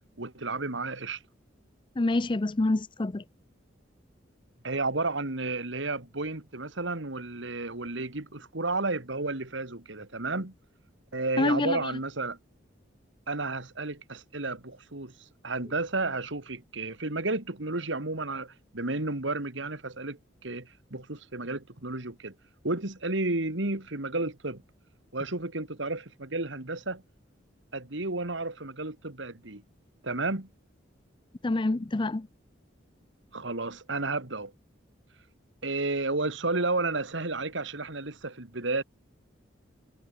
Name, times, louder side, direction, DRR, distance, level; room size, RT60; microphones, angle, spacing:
voice 1, 0.2-1.2 4.6-10.5 11.1-12.4 13.3-15.1 15.4-22.3 22.6-24.6 25.1-27.0 27.7-29.6 30.0-30.5 33.3-34.5 35.6-38.8, right 2 dB, 65° right, 2.4 m, -32 dB
voice 2, 2.0-3.2 11.4-12.0 31.4-32.3, left 2 dB, 25° left, 0.5 m, -27 dB
head